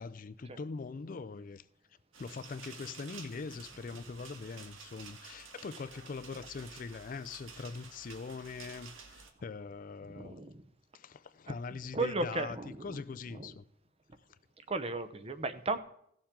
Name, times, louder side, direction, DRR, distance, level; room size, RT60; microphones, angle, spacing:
voice 1, 0.0-1.7 2.2-10.4 10.9-12.6 12.8-13.7, left 4 dB, 40° left, 0.4 m, -42 dB
sound 1, 2.1-9.3, right 5 dB, 80° right, 1.5 m, -51 dB
voice 2, 10.1-10.6 11.5-13.0 13.3-13.5 14.7-15.8, right 2 dB, 30° right, 0.7 m, -36 dB
17.0 x 7.1 x 3.7 m
head